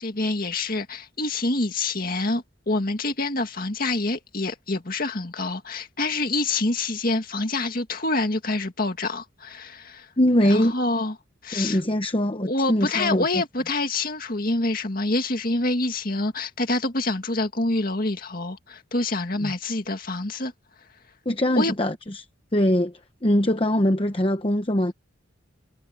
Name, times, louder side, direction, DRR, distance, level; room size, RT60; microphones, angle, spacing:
voice 1, 0.0-10.1 10.4-11.1 11.4-11.8 12.4-20.5 21.6-21.7, left 2 dB, 45° left, 2.1 m, -26 dB
voice 2, 10.2-10.7 11.5-13.3 19.4-19.5 21.2-21.9 22.5-24.9, left 1 dB, 25° left, 0.9 m, -22 dB
head